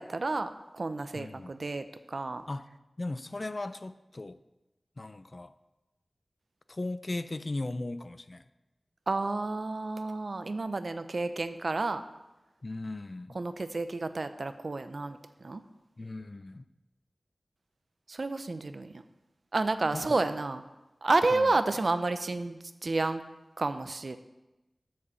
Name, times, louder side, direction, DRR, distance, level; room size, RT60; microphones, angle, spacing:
voice 1, 0.0-2.4 9.1-12.0 13.3-15.6 18.1-18.9 19.5-20.6 21.0-23.2 23.6-24.2, right 3 dB, 60° right, 11 dB, 0.5 m, -30 dB
voice 2, 1.1-1.5 2.5-2.7 3.0-4.4 5.0-5.5 6.7-8.4 12.6-13.4 16.0-16.6 19.9-20.2 21.3-21.5, left 2 dB, 45° left, 13 dB, 0.3 m, -37 dB
6.8 x 5.2 x 7.0 m, 1.0 s
wide cardioid pair, 75°, 0 cm